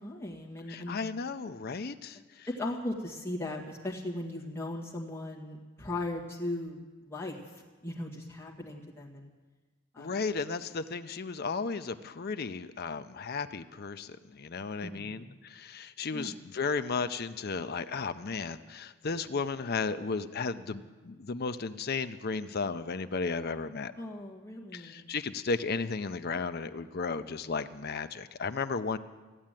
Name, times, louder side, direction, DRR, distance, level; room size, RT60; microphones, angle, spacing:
voice 1, 0.0-1.0 2.6-7.4 7.8-9.3 9.9-10.1 14.8-15.3 16.1-16.4 24.0-25.1, left 1 dB, 10° left, -4 dB, 1.9 m, -38 dB
voice 2, 0.7-2.5 10.0-23.9 24.7-29.0, left 4 dB, 45° left, 10 dB, 0.5 m, -34 dB
15.0 x 8.5 x 9.0 m, 1.3 s
head